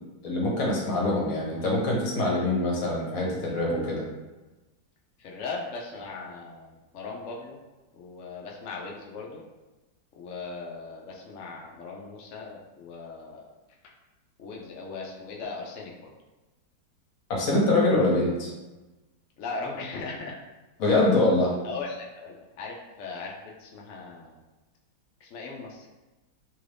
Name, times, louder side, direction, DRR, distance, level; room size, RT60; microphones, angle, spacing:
voice 1, 0.2-4.1 17.3-18.5 20.8-21.5, left 2 dB, 60° left, -3 dB, 1.2 m, -24 dB
voice 2, 5.2-7.6 7.9-9.4 10.2-13.4 14.4-16.1 19.4-20.3 21.6-24.4 25.2-25.9, left 4 dB, 75° left, -2 dB, 0.7 m, -38 dB
3.0 x 2.5 x 3.3 m, 1.1 s
omnidirectional pair, 1.8 m